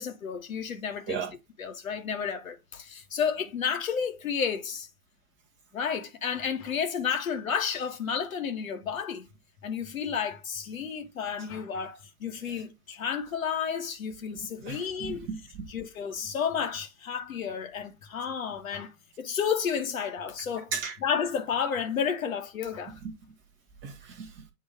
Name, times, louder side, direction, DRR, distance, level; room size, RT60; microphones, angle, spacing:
voice 1, 0.0-1.2 1.6-4.9 5.7-9.3 9.6-15.2 15.7-18.9 19.2-20.7 21.0-23.0, left 7 dB, 65° left, 1.4 m, -31 dB
voice 2, 14.3-15.7 20.7-21.0 23.0-23.1 23.8-24.4, right 6 dB, 25° right, 1.5 m, -36 dB
8.1 x 2.9 x 4.5 m
figure-of-eight pair, 105°, 44 cm